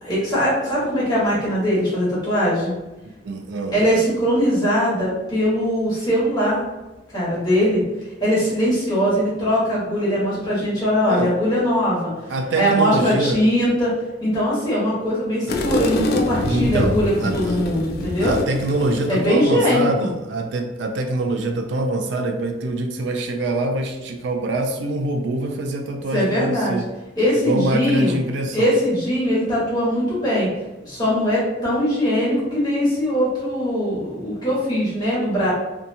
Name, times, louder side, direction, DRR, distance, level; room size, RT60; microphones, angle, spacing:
voice 1, 0.0-2.7 3.7-6.6 7.1-7.8 8.2-12.1 12.6-13.9 14.2-18.4 19.1-20.1 26.1-26.8 27.2-28.2 28.5-30.5 30.8-35.5, equal, 20° left, -8 dB, 1.2 m, -21 dB
voice 2, 3.2-3.8 11.1-11.4 12.3-13.4 16.4-17.6 18.2-26.8 27.4-28.8, right 2 dB, 65° right, 4 dB, 0.3 m, -24 dB
sound 1, 15.5-19.5, left 2 dB, 55° left, 0.3 m, -26 dB
2.7 x 2.2 x 2.6 m, 1.0 s
head